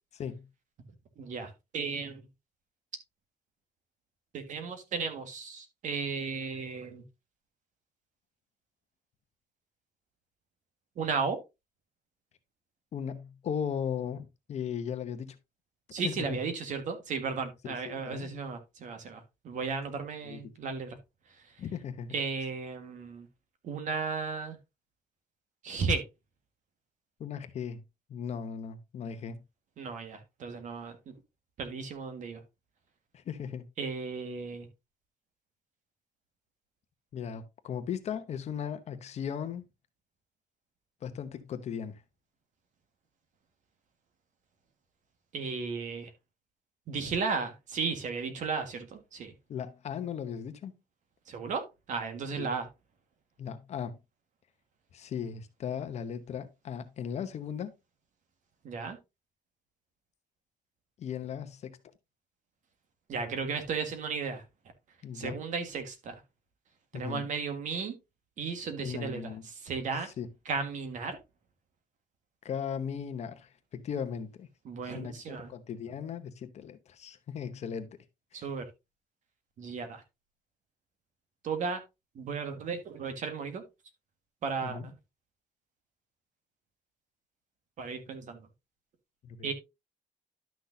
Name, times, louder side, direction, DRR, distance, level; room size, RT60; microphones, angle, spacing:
voice 1, 0.1-0.5 12.9-15.4 16.0-16.4 17.6-18.4 20.2-20.5 21.6-22.2 27.2-27.8 28.1-29.4 33.1-33.7 37.1-39.7 41.0-42.0 49.5-50.7 52.4-52.5 53.4-54.0 54.9-57.7 61.0-61.8 65.0-65.4 66.9-67.3 68.8-69.5 69.9-70.3 72.4-74.5 74.8-78.0 78.3-78.5 84.6-84.9 89.2-89.5, left 7 dB, 45° left, 0.9 m, -37 dB
voice 2, 1.2-2.2 4.3-7.0 11.0-11.4 15.9-21.0 22.1-23.3 23.6-24.6 25.6-26.0 29.8-31.1 31.6-32.4 33.8-34.7 45.3-46.1 46.9-49.3 51.3-52.7 58.6-59.0 63.1-64.4 65.1-66.1 66.9-67.9 68.4-69.2 69.6-70.1 70.4-71.2 74.6-75.5 78.3-78.6 79.6-80.0 81.4-81.8 82.1-83.6 84.4-84.9 87.8-88.5 89.4-89.5, right 5 dB, 55° right, 1.7 m, -34 dB
11.5 x 6.2 x 2.7 m
cardioid pair, 175°, 16 cm